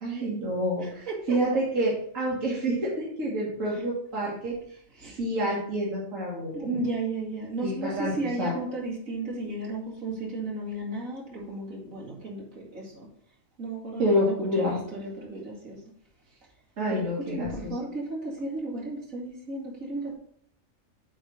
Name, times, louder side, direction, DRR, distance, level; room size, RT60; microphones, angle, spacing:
voice 1, 0.0-4.5 5.1-6.5 7.6-8.5 14.0-14.8 16.8-17.7, equal, 75° right, -5 dB, 2.0 m, -28 dB
voice 2, 0.8-1.4 3.7-3.8 4.9-5.2 6.5-13.1 13.6-15.8 16.9-20.2, right 2 dB, 90° right, -5 dB, 2.7 m, -34 dB
8.0 x 3.3 x 6.2 m, 0.64 s
omnidirectional pair, 1.3 m